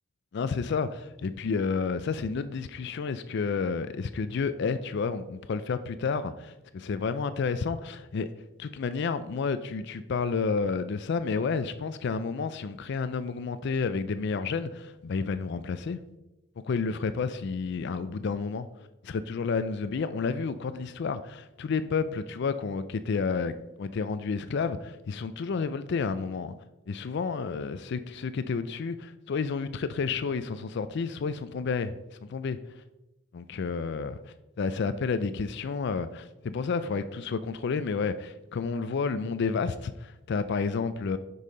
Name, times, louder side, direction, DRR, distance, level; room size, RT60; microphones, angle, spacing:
voice 1, 0.3-8.3 8.6-16.0 16.6-18.7 19.0-23.5 23.8-26.5 26.9-31.9 32.3-32.6 33.3-34.2 34.6-41.2, left 5 dB, 60° left, 0.4 m, -30 dB
6.6 x 5.5 x 5.0 m
head